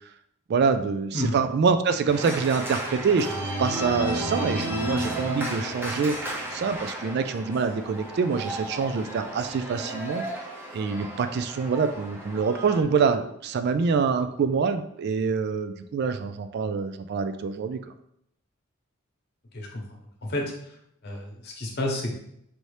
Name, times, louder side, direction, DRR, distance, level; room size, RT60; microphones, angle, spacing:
voice 1, 0.5-3.3 3.6-10.2 10.7-17.8, right 5 dB, 50° right, 9 dB, 0.3 m, -25 dB
Organ, 2.1-12.8, right 1 dB, 10° right, 0.8 m, -33 dB
voice 2, 21.0-22.1, left 1 dB, 55° left, 0 dB, 1.0 m, -30 dB
4.6 x 2.7 x 3.2 m, 0.74 s
head